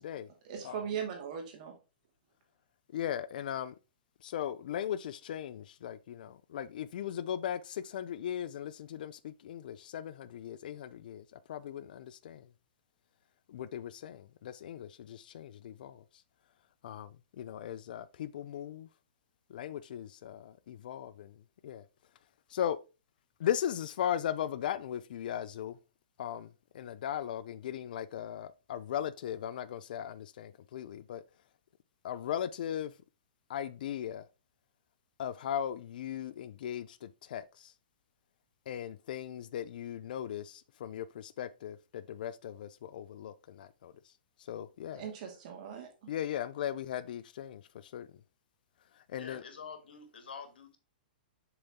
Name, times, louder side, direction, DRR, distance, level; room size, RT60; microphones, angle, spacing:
voice 1, 0.4-1.7 44.9-46.1, right 8 dB, 50° right, 2.2 m, -39 dB
voice 2, 2.9-3.7 4.2-12.5 13.5-16.0 16.8-18.9 19.5-21.8 22.5-22.8 23.4-25.8 26.2-31.2 32.0-32.9 33.5-34.3 35.2-37.7 38.7-43.9 44.4-45.1 46.1-48.1 48.9-49.4, left 10 dB, 60° left, 0.4 m, -38 dB
voice 3, 49.2-50.8, left 6 dB, 90° left, 1.6 m, -47 dB
6.9 x 4.0 x 3.5 m
hypercardioid pair, 150°, 5 cm